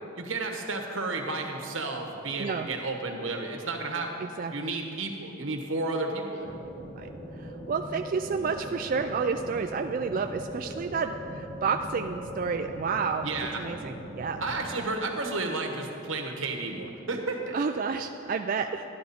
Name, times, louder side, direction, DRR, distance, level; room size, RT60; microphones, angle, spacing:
voice 1, 0.2-6.5 13.2-13.6 14.4-17.5, right 3 dB, 85° right, 3 dB, 1.4 m, -32 dB
voice 2, 4.2-4.5 7.0-7.1 7.4-13.3 13.6-14.4 17.5-18.8, right 5 dB, 45° right, 5 dB, 0.3 m, -30 dB
sound 1, 6.4-14.7, equal, 30° left, 2.2 m, -40 dB
12.5 x 11.5 x 4.3 m, 2.8 s
head